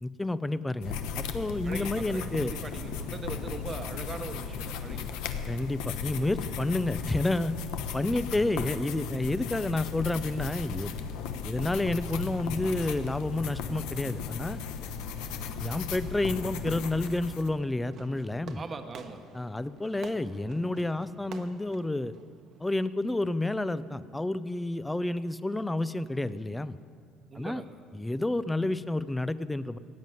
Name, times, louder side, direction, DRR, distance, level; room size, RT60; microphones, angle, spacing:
voice 1, 0.0-2.5 5.5-7.5 7.9-11.0 11.4-14.6 15.6-18.6 19.3-22.1 22.6-26.8 27.4-27.6 27.9-29.8, left 2 dB, 10° left, 16 dB, 0.4 m, -30 dB
sound 1, 0.8-17.5, left 6 dB, 85° left, 1.1 m, -36 dB
voice 2, 1.6-5.2 18.5-19.2 27.3-27.8, right 4 dB, 25° right, 8 dB, 1.1 m, -41 dB
Fireworks, 17.8-22.9, right 6 dB, 50° right, 1.1 m, -49 dB
16.0 x 9.2 x 9.3 m, 2.2 s
cardioid pair, 140°, 0 cm